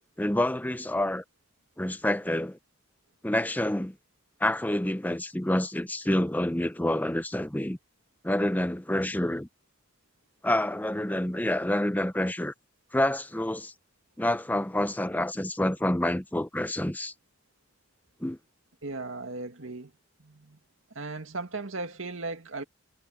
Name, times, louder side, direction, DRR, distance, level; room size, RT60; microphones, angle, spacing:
voice 1, 0.2-1.2 1.8-2.6 3.2-3.9 4.4-7.8 8.2-9.5 10.4-12.5 12.9-13.7 14.2-17.1 18.2-18.4, left 1 dB, 10° left, 0.7 m, -28 dB
voice 2, 18.8-19.9 20.2-20.6 20.9-22.6, right 3 dB, 80° right, 2.1 m, -37 dB
head